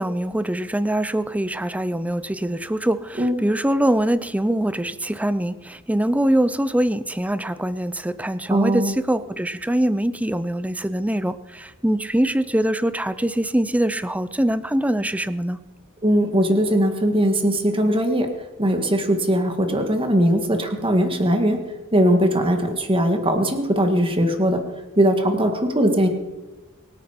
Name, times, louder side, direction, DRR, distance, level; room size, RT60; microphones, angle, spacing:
voice 1, 0.0-15.6, right 1 dB, 5° right, 14 dB, 0.5 m, -23 dB
voice 2, 8.5-8.9 16.0-18.3 18.6-21.6 21.9-24.6 25.0-26.1, equal, 25° right, 5 dB, 1.9 m, -20 dB
24.0 x 9.3 x 5.2 m, 1.2 s
head